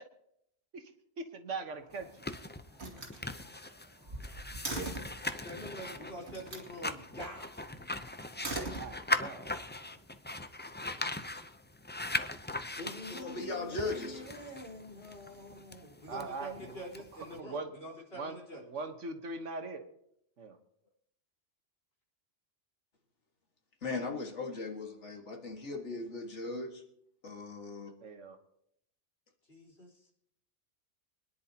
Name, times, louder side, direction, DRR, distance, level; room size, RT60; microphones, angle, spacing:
voice 1, 1.2-2.2 8.8-9.5 16.1-16.8 17.4-17.7 18.1-19.8 20.4-20.6 28.0-28.4, right 3 dB, 85° right, 7 dB, 1.6 m, -41 dB
Slam, 1.7-2.3 2.7-5.2 6.3-6.7 8.2-9.4, right 2 dB, 65° right, 2.6 m, -41 dB
sound 1, 1.9-17.4, left 2 dB, 15° left, 0.3 m, -40 dB
voice 2, 4.7-7.7 12.8-18.6 29.5-30.1, equal, 55° left, -4 dB, 4.4 m, -46 dB
voice 3, 12.8-14.3 23.8-26.8 27.2-27.9, left 3 dB, 70° left, 2 dB, 2.1 m, -38 dB
25.0 x 10.5 x 2.9 m, 0.73 s
omnidirectional pair, 1.2 m